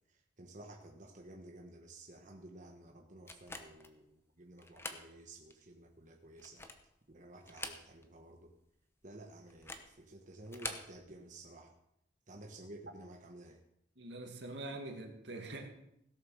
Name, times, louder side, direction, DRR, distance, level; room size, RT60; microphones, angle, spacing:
voice 1, 0.4-6.6 7.1-8.5 9.0-11.7 12.3-13.6, right 1 dB, 45° right, 2 dB, 1.2 m, -53 dB
sound 1, 3.3-3.9 4.6-5.1 5.5-5.6 6.3-6.9 7.4-8.2 8.5-8.6 9.5-9.9 10.4-10.9, left 2 dB, 15° left, 1.1 m, -45 dB
voice 2, 14.0-15.7, right 2 dB, 80° right, 3 dB, 2.2 m, -44 dB
17.0 x 7.5 x 6.4 m, 0.79 s
head